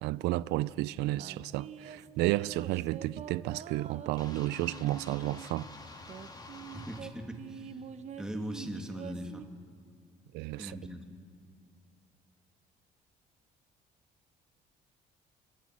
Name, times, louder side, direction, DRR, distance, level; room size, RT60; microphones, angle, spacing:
voice 1, 0.0-5.7 10.3-10.8, right 17 dB, 85° right, 0.4 m, -32 dB
sound 1, 1.1-5.5 6.1-9.4, right 7 dB, 40° right, 0.9 m, -45 dB
sound 2, 4.2-7.0, left 3 dB, 25° left, 2.4 m, -48 dB
voice 2, 6.7-7.8 8.2-9.4 10.6-11.2, equal, 5° right, 2.2 m, -40 dB
29.5 x 12.5 x 7.4 m
cardioid pair, 110°, 17 cm